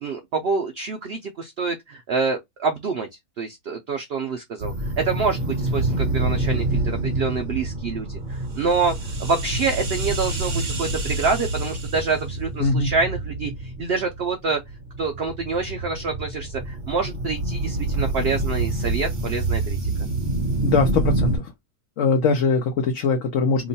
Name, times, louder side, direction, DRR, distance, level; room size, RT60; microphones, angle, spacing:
voice 1, 0.0-3.1 3.4-8.9 9.2-14.6 15.0-19.8, right 4 dB, 85° right, 0.5 m, -26 dB
sound 1, 4.6-21.4, right 2 dB, 40° right, 0.8 m, -27 dB
voice 2, 12.6-12.9 20.6-21.5 22.0-23.7, left 4 dB, 60° left, 1.0 m, -21 dB
2.9 x 2.2 x 3.9 m
omnidirectional pair, 1.6 m